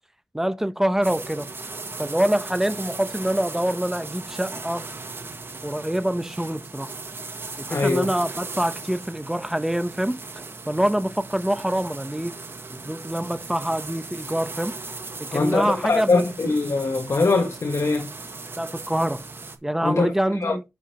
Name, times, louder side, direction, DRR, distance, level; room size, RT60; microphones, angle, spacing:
voice 1, 0.3-1.5 2.0-4.9 5.6-6.9 7.6-10.2 10.7-12.4 12.7-14.8 15.2-16.3 18.6-19.2 19.6-20.6, right 1 dB, 5° right, 0.8 m, -25 dB
sound 1, 1.0-19.6, right 3 dB, 45° right, 1.4 m, -38 dB
voice 2, 7.7-8.1 15.3-18.1 19.8-20.6, left 3 dB, 65° left, 1.8 m, -22 dB
10.0 x 6.8 x 3.0 m
wide cardioid pair, 125°, 6 cm